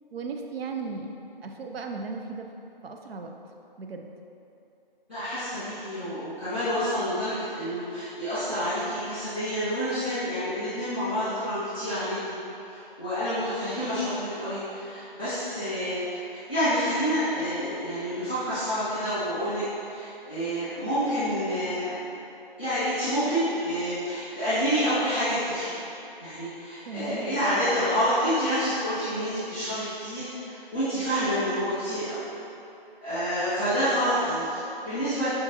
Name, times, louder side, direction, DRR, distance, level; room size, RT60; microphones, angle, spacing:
voice 1, 0.1-1.1 1.4-2.5 2.8-3.3 3.8-4.1 26.8-27.4, right 4 dB, 80° right, 3 dB, 0.5 m, -36 dB
voice 2, 5.1-12.2 12.6-21.9 22.6-25.8 26.2-32.2 33.0-35.3, equal, 10° right, -22 dB, 0.8 m, -28 dB
5.7 x 2.3 x 2.7 m, 2.8 s
figure-of-eight pair, 175°, 29 cm